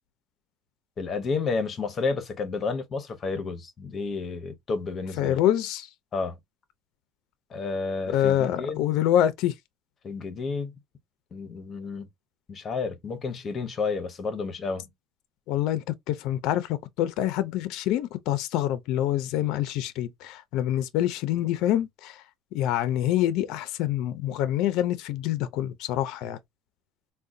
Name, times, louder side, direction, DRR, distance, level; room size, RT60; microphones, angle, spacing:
voice 1, 1.0-5.4 6.1-6.4 7.5-8.8 10.0-10.7 11.3-12.1 12.5-14.9, left 4 dB, 30° left, 0.7 m, -31 dB
voice 2, 5.2-5.9 8.1-9.5 15.5-22.2 22.5-26.4, left 12 dB, 65° left, 0.4 m, -26 dB
3.7 x 2.1 x 2.5 m
cardioid pair, 155°, 0 cm